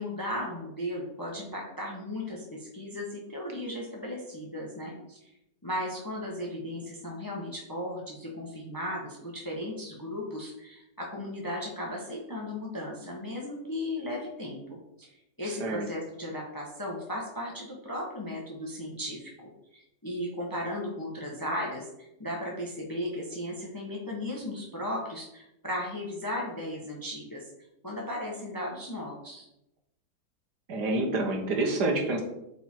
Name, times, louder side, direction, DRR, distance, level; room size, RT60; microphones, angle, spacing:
voice 1, 0.0-5.3 5.6-19.3 19.7-27.4 27.8-29.5, left 1 dB, 15° left, -1 dB, 1.3 m, -36 dB
voice 2, 15.4-15.9 30.7-32.2, right 2 dB, 70° right, 3 dB, 1.9 m, -28 dB
7.9 x 4.5 x 4.6 m, 0.84 s
omnidirectional pair, 1.8 m